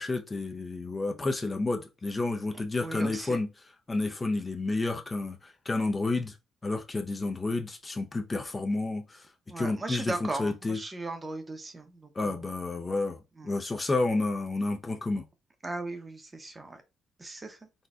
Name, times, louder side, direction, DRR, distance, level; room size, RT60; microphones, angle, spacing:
voice 1, 0.0-3.5 3.9-6.4 6.6-9.3 9.6-10.8 12.1-13.2 13.4-15.2, left 2 dB, 25° left, 0.5 m, -30 dB
voice 2, 2.8-3.4 9.5-12.4 13.4-13.5 15.6-16.8 17.2-17.6, right 2 dB, 25° right, 0.7 m, -37 dB
4.0 x 2.2 x 2.4 m
cardioid pair, 90°, 0 cm